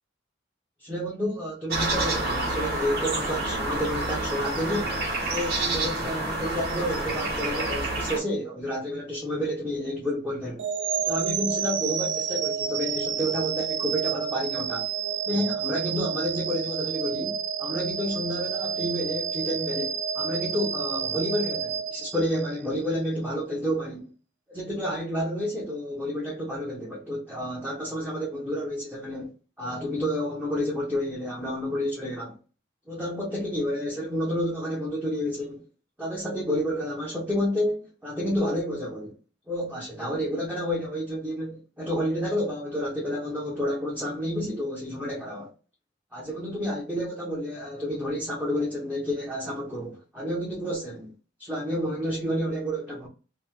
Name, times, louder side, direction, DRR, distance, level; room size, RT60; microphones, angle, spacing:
voice 1, 0.8-5.0 5.3-10.6 11.0-14.9 15.3-24.1 24.5-29.3 29.6-32.4 32.9-35.6 36.0-39.1 39.5-45.5 46.1-51.1 51.4-53.1, equal, 5° right, 0.6 m, -30 dB
sound 1, 1.7-8.2, right 2 dB, 50° right, 1.0 m, -28 dB
sound 2, 10.6-22.7, right 7 dB, 65° right, 0.4 m, -30 dB
2.8 x 2.1 x 3.4 m
head